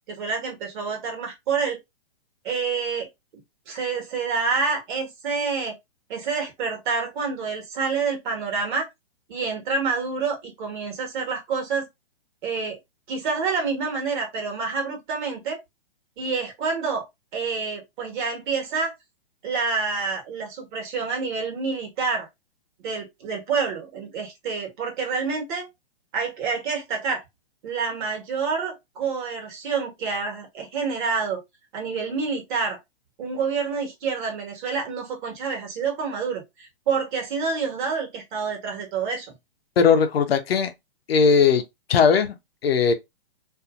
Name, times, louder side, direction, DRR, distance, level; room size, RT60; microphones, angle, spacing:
voice 1, 0.1-1.8 2.4-3.1 3.7-5.7 6.1-8.9 9.3-11.8 12.4-12.8 13.1-15.6 16.2-17.0 17.3-18.9 19.4-22.3 22.8-25.7 26.1-27.2 27.6-31.4 31.7-32.8 33.2-39.3, right 5 dB, 50° right, 1.4 m, -28 dB
voice 2, 39.8-40.7 41.1-41.6 41.9-42.3 42.6-42.9, left 6 dB, 70° left, 0.7 m, -18 dB
2.7 x 2.6 x 2.3 m
hypercardioid pair, 125°, 31 cm